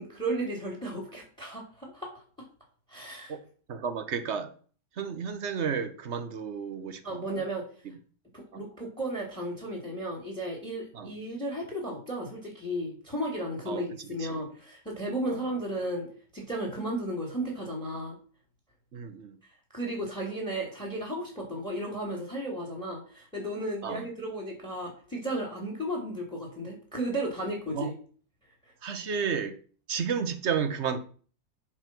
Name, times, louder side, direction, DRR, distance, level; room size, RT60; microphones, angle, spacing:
voice 1, 0.0-2.1 2.9-3.4 7.0-7.6 8.3-18.1 19.7-27.9, right 1 dB, 5° left, 2.7 m, -34 dB
voice 2, 3.3-4.5 5.0-7.4 8.5-8.6 10.9-11.1 13.7-13.8 14.3-14.4 15.3-15.4 18.9-19.4 23.8-24.0 27.8-27.9 28.8-29.6 29.9-31.0, right 6 dB, 50° right, 1.1 m, -32 dB
7.9 x 5.7 x 6.0 m
omnidirectional pair, 1.8 m